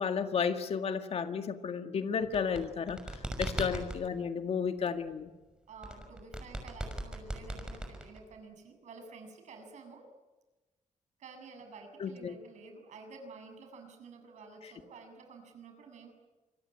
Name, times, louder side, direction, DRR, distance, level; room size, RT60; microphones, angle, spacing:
voice 1, 0.0-3.0 3.4-5.3 12.0-12.3, left 6 dB, 55° left, 8 dB, 1.9 m, -32 dB
sound 1, 2.2-4.0 5.8-8.4, right 1 dB, 5° right, 6.0 m, -38 dB
voice 2, 5.7-10.0 11.2-16.1, right 4 dB, 70° right, 5 dB, 7.3 m, -50 dB
27.0 x 22.5 x 8.7 m, 1.2 s
cardioid pair, 115°, 13 cm